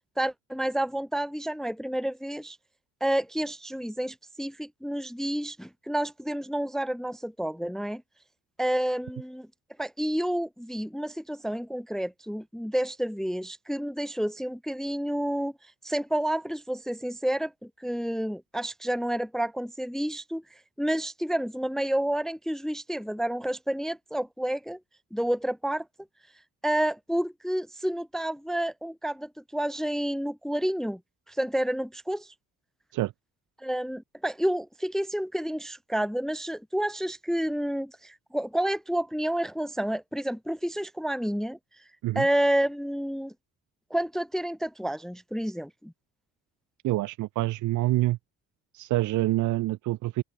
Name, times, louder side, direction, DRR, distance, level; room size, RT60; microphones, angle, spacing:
voice 1, 0.2-2.6 3.0-8.0 8.6-9.5 9.8-15.5 15.8-20.4 20.8-24.8 25.1-25.9 26.6-31.0 31.3-32.3 33.6-41.6 42.2-43.3 43.9-45.9, right 1 dB, ahead, 0.7 m, -29 dB
voice 2, 46.8-48.2 48.7-50.2, right 17 dB, 80° right, 0.7 m, -26 dB
open air
cardioid pair, 90°, 30 cm